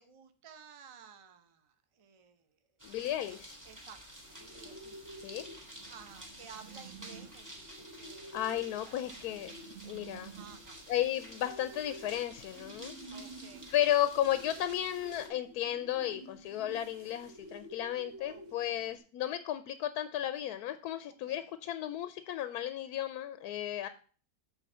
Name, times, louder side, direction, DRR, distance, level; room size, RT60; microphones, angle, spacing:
voice 1, 0.0-2.5 3.6-9.2 10.3-10.9 13.1-13.7 18.2-18.9 21.0-21.5, right 7 dB, 30° right, 8 dB, 0.7 m, -55 dB
voice 2, 2.8-3.6 5.2-5.5 8.3-9.5 9.9-10.3 10.9-12.9 13.7-23.9, left 12 dB, 85° left, 11 dB, 1.1 m, -34 dB
sound 1, 2.8-15.3, right 1 dB, 10° right, 1.9 m, -51 dB
sound 2, 4.2-19.0, right 2 dB, 55° right, 1.4 m, -51 dB
8.3 x 4.2 x 5.4 m, 0.39 s
omnidirectional pair, 1.6 m